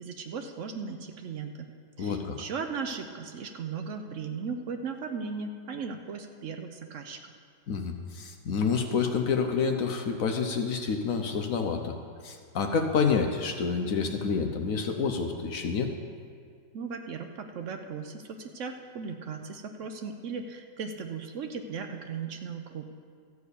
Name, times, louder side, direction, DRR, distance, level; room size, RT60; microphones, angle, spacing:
voice 1, 0.0-1.7 2.0-7.2 16.7-22.9, right 5 dB, 70° right, 5 dB, 0.7 m, -37 dB
voice 2, 2.0-2.4 7.7-11.9 12.2-15.9, left 5 dB, 60° left, 4 dB, 0.9 m, -28 dB
14.0 x 4.8 x 8.2 m, 2.1 s
omnidirectional pair, 2.0 m